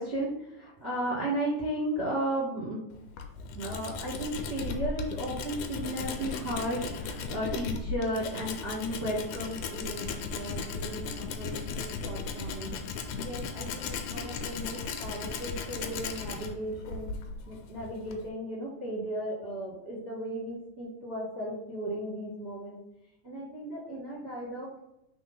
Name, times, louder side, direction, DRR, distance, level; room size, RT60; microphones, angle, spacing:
voice 1, 0.0-2.8 3.5-12.7 13.1-17.1 17.4-22.8 23.2-24.8, right 1 dB, 25° right, -6 dB, 1.8 m, -35 dB
Tools, 2.9-18.3, left 4 dB, 90° left, 2.2 m, -36 dB
4.5 x 4.0 x 5.5 m, 0.87 s
omnidirectional pair, 3.6 m